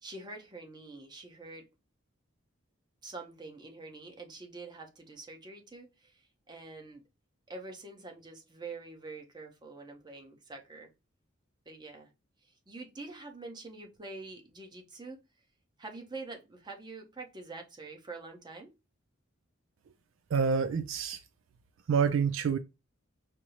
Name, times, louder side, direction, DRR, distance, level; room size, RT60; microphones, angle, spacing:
voice 1, 0.0-1.7 3.0-7.0 7.5-10.9 11.7-12.1 12.4-15.2 15.8-18.7, right 3 dB, 20° right, 0.8 m, -46 dB
voice 2, 20.3-21.2 21.9-22.6, right 6 dB, 70° right, 0.3 m, -27 dB
5.1 x 2.0 x 2.9 m
head